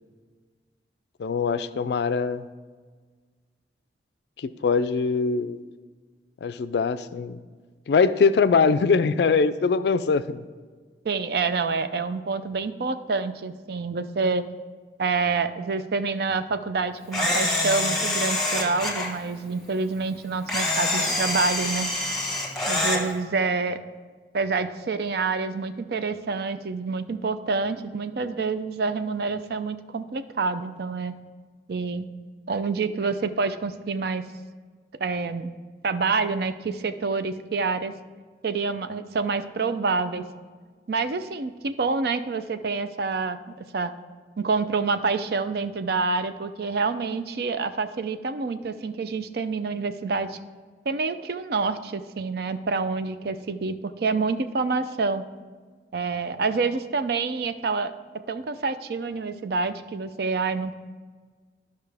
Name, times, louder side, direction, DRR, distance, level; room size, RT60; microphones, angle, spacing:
voice 1, 1.2-2.5 4.4-5.6 6.4-7.4 7.9-10.4, left 5 dB, 65° left, 13 dB, 0.3 m, -22 dB
voice 2, 11.0-14.4 15.0-21.9 22.3-22.4 22.7-23.8 24.3-31.1 31.7-32.1 32.5-34.2 35.0-35.5 35.8-37.9 38.4-40.2 40.9-43.9 44.4-50.4 50.9-55.2 55.9-57.9 58.3-60.7, right 4 dB, 60° right, 10 dB, 0.4 m, -27 dB
Camera, 17.1-19.1 20.5-23.0, left 2 dB, ahead, 1.4 m, -25 dB
13.0 x 5.6 x 3.4 m, 1.5 s
head